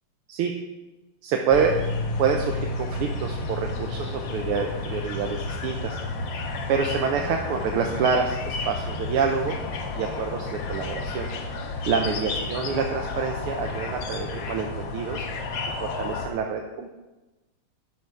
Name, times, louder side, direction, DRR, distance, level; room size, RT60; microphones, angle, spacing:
voice 1, 1.2-1.8 2.2-6.0 6.7-9.6 9.9-11.3 11.9-15.3 15.8-16.9, right 6 dB, 85° right, 2 dB, 1.7 m, -27 dB
sound 1, 1.5-16.3, left 3 dB, 65° left, 1.6 m, -31 dB
11.0 x 7.0 x 4.6 m, 1.1 s
omnidirectional pair, 2.4 m